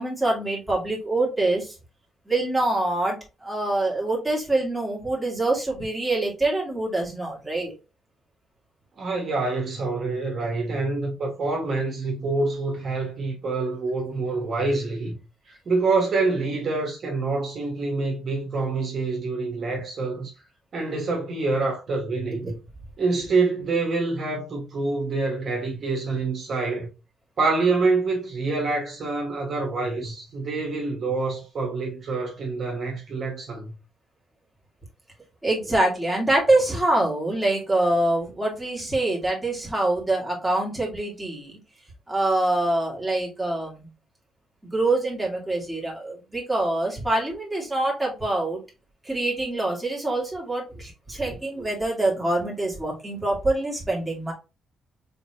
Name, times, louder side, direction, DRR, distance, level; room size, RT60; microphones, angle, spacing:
voice 1, 0.0-1.7 2.3-7.7 22.4-22.5 35.4-41.6 42.1-43.9 44.7-48.6 49.0-54.3, right 2 dB, 10° right, 2.1 m, -25 dB
voice 2, 9.0-15.2 15.5-20.3 20.7-22.6 23.0-26.9 27.4-33.7, right 3 dB, 50° right, 1.6 m, -26 dB
4.1 x 3.7 x 2.8 m
cardioid pair, 90°, 0 cm